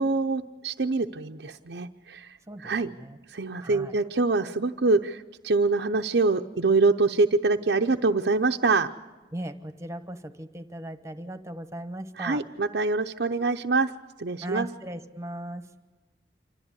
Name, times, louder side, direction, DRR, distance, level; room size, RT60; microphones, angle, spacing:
voice 1, 0.0-2.9 3.3-8.9 12.2-13.9 14.2-14.7, right 3 dB, 80° right, 4 dB, 0.7 m, -25 dB
voice 2, 2.5-3.2 3.6-3.9 9.3-12.4 14.4-15.7, right 1 dB, 15° right, 10 dB, 1.2 m, -38 dB
27.0 x 14.0 x 9.8 m, 1.2 s
head